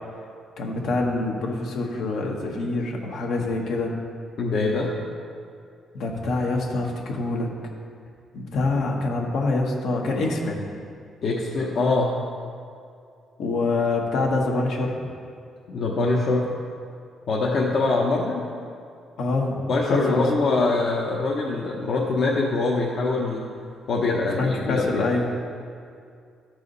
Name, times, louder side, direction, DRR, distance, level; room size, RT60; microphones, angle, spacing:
voice 1, 0.6-3.9 5.9-7.5 8.3-10.7 13.4-15.0 19.2-19.6 19.9-20.7 24.4-25.3, left 2 dB, 75° left, 0 dB, 1.5 m, -25 dB
voice 2, 4.4-4.9 11.2-12.1 15.7-16.5 17.3-18.4 19.7-23.4 23.9-25.1, left 3 dB, 60° left, -3 dB, 1.1 m, -23 dB
13.5 x 4.8 x 4.1 m, 2.3 s
cardioid pair, 90°, 0 cm